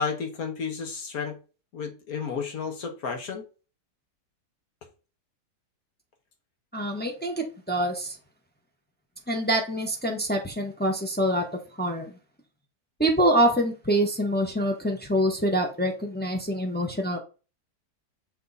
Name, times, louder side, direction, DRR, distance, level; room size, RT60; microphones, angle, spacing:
voice 1, 0.0-1.4 1.7-3.4, left 5 dB, 65° left, 1.6 m, -32 dB
voice 2, 6.7-8.2 9.3-11.4 11.8-12.1 13.0-17.2, right 1 dB, 10° left, 0.8 m, -25 dB
6.7 x 3.6 x 4.0 m
omnidirectional pair, 1.7 m